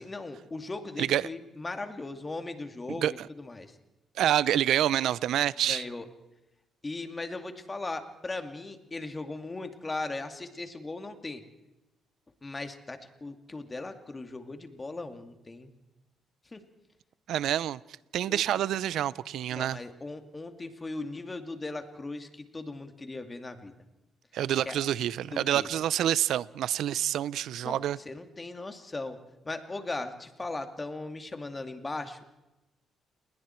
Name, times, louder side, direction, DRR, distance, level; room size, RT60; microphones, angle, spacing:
voice 1, 0.0-3.7 5.7-6.1 6.8-11.4 12.4-15.7 16.5-16.6 18.2-18.4 19.5-23.7 24.7-24.8 25.3-25.7 27.6-27.8 28.1-29.2 29.4-32.4, left 2 dB, 25° left, 2.4 m, -38 dB
voice 2, 2.9-3.3 4.2-5.8 17.3-17.8 18.1-19.8 24.3-28.0, right 11 dB, 75° right, 0.6 m, -27 dB
29.5 x 20.5 x 4.5 m
cardioid pair, 90°, 0 cm